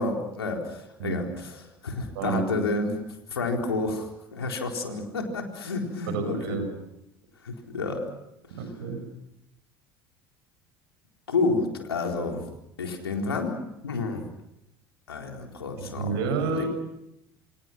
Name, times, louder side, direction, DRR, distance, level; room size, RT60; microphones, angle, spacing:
voice 1, 0.0-1.6 1.8-3.0 3.3-6.6 7.4-8.0 11.3-12.5 12.8-13.6 13.8-14.3 15.1-16.7, left 3 dB, 85° left, 2 dB, 4.2 m, -30 dB
voice 2, 6.1-6.7 8.5-9.0 15.8-16.7, right 5 dB, 70° right, 7 dB, 6.3 m, -29 dB
28.0 x 26.5 x 6.1 m, 0.84 s
figure-of-eight pair, 65°, 13 cm